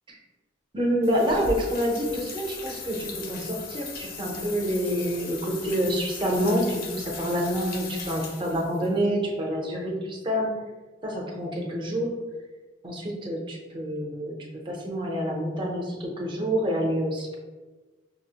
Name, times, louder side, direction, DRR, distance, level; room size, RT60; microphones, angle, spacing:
voice 1, 0.7-10.5 11.0-12.1 12.8-14.3 14.7-17.4, equal, 25° right, -1 dB, 0.6 m, -27 dB
sound 1, 1.0-8.9, left 4 dB, 55° left, 0.5 m, -38 dB
5.5 x 2.0 x 2.8 m, 1.3 s
head